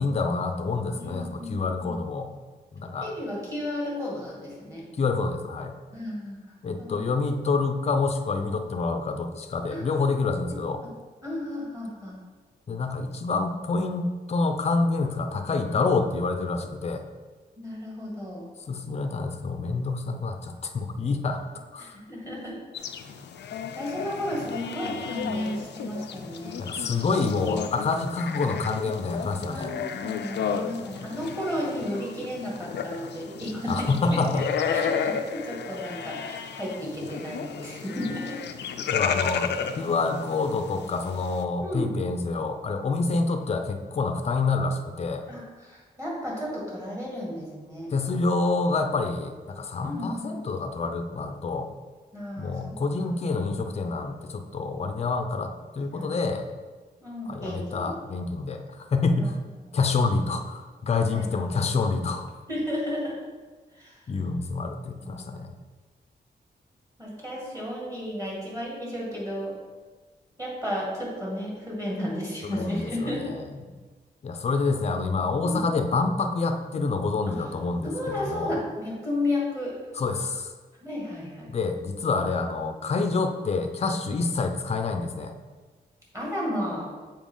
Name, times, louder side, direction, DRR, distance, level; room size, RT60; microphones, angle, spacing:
voice 1, 0.0-2.3 2.7-3.1 5.0-5.7 6.6-10.8 12.7-17.0 18.7-21.4 21.7-22.0 26.6-29.7 33.7-34.4 38.9-45.3 47.9-51.7 52.4-56.5 57.3-59.4 59.7-62.4 64.1-65.5 72.5-73.7 74.2-78.6 80.0-80.5 81.5-85.3, left 3 dB, 40° left, 6 dB, 0.5 m, -27 dB
voice 2, 1.0-2.0 3.0-4.8 5.9-6.4 6.8-7.0 9.7-9.8 10.8-10.9 11.2-12.2 17.6-18.4 21.8-22.6 23.7-26.6 29.5-38.4 41.6-42.0 45.3-47.9 49.8-50.4 52.1-53.1 55.9-56.2 57.0-57.9 59.1-59.3 59.6-59.8 61.1-61.6 62.5-63.2 63.7-64.1 65.0-65.5 67.0-69.5 70.4-73.4 75.4-75.6 77.3-77.4 77.8-79.7 80.8-81.5 86.1-86.9, left 1 dB, 20° right, -5 dB, 2.1 m, -33 dB
sound 1, 22.7-41.4, left 7 dB, 90° left, 0.5 m, -33 dB
7.1 x 4.4 x 3.8 m, 1.4 s
wide cardioid pair, 125°, 17 cm